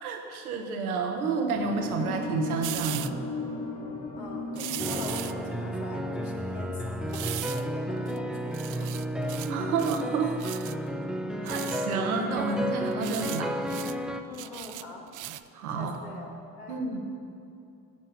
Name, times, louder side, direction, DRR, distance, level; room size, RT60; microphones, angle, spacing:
voice 1, 0.0-3.1 9.5-10.5 11.4-13.6 15.5-16.0 16.7-17.0, right 4 dB, 85° right, 3 dB, 1.0 m, -30 dB
sound 1, 1.5-6.7, left 2 dB, 60° left, 2.2 m, -36 dB
sound 2, 2.6-3.1 4.6-5.3 7.1-7.7 8.1-8.2 8.5-9.5 9.8-10.1 10.4-10.7 11.5-11.9 12.9-13.4 13.7-13.9 14.3-15.5 15.9-16.0, right 14 dB, 50° right, 0.5 m, -37 dB
voice 2, 4.2-9.5 14.3-15.1 15.7-16.3 16.6-16.8, left 3 dB, 75° left, -1 dB, 1.5 m, -43 dB
sound 3, 4.8-14.2, equal, ahead, 0.7 m, -32 dB
11.0 x 5.5 x 7.6 m, 2.5 s
hypercardioid pair, 45°, 42 cm